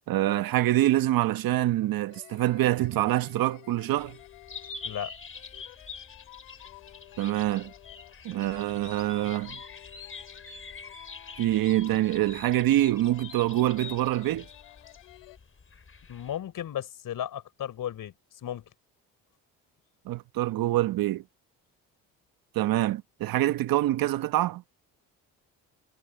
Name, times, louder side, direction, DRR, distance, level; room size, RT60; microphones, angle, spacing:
voice 1, 0.1-4.2 7.2-7.7 8.2-9.6 11.4-14.5 20.0-21.2 22.5-24.6, right 14 dB, 65° right, 1.3 m, -25 dB
sound 1, 2.1-15.4, left 29 dB, 90° left, 4.4 m, -52 dB
sound 2, 4.0-16.4, left 5 dB, 35° left, 6.0 m, -45 dB
voice 2, 16.1-18.6, left 10 dB, 60° left, 5.9 m, -35 dB
supercardioid pair, 65°, 37 cm